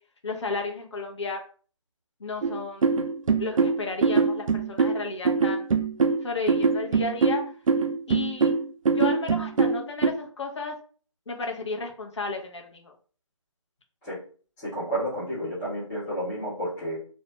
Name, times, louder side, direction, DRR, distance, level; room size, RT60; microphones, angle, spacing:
voice 1, 0.2-1.4 2.2-3.0 3.4-5.7 6.2-7.4 8.1-8.5 8.9-10.7 11.3-12.9, left 3 dB, 60° left, 2 dB, 0.8 m, -33 dB
sound 1, 2.4-10.1, right 5 dB, 75° right, 0.4 m, -23 dB
voice 2, 14.6-17.0, right 1 dB, 5° left, -12 dB, 0.3 m, -31 dB
2.5 x 2.1 x 2.9 m, 0.42 s
figure-of-eight pair, 150°, 17 cm